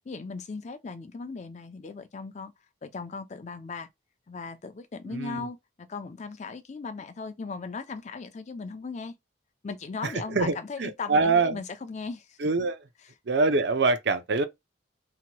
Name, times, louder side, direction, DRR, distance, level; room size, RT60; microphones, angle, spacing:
voice 1, 0.1-2.5 2.8-3.9 4.3-9.1 9.6-12.4, left 4 dB, 35° left, 0.4 m, -38 dB
voice 2, 5.1-5.5 10.0-11.6 12.4-12.8 13.3-14.4, right 3 dB, 60° right, 0.5 m, -25 dB
2.9 x 2.2 x 2.8 m
head